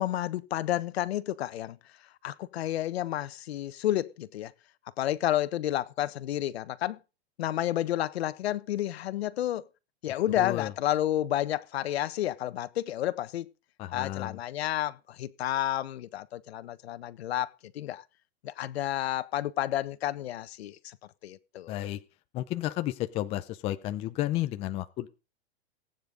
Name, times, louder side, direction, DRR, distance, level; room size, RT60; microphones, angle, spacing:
voice 1, 0.0-1.8 2.2-4.5 5.0-7.0 7.4-9.6 10.0-13.5 13.9-18.0 18.4-21.0 21.2-21.8, left 13 dB, 70° left, 1.4 m, -30 dB
voice 2, 10.4-10.7 13.8-14.4 21.7-22.0 22.3-25.1, left 14 dB, 20° left, 0.7 m, -32 dB
19.0 x 9.5 x 5.3 m
supercardioid pair, 170°, 33 cm